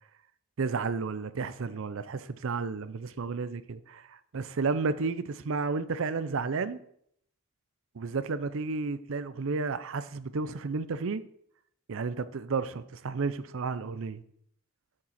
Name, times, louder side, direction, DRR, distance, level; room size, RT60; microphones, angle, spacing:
voice 1, 0.6-6.8 8.0-11.2 11.9-14.2, right 4 dB, 65° right, 0.5 m, -32 dB
7.3 x 7.3 x 4.1 m
head